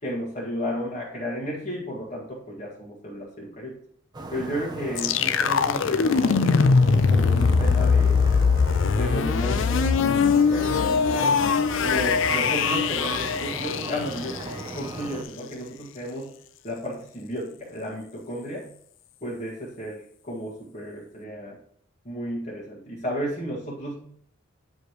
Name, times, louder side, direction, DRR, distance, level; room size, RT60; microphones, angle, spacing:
voice 1, 0.0-3.7 4.3-8.3 9.0-10.2 10.5-11.3 11.8-16.3 16.6-18.7 19.2-21.6 22.1-24.1, equal, 40° left, -6 dB, 1.8 m, -33 dB
sound 1, 4.1-15.2, right 2 dB, 20° right, 0.7 m, -36 dB
sound 2, 5.0-14.8, left 5 dB, 70° left, 0.4 m, -21 dB
9.1 x 4.9 x 3.1 m, 0.66 s
head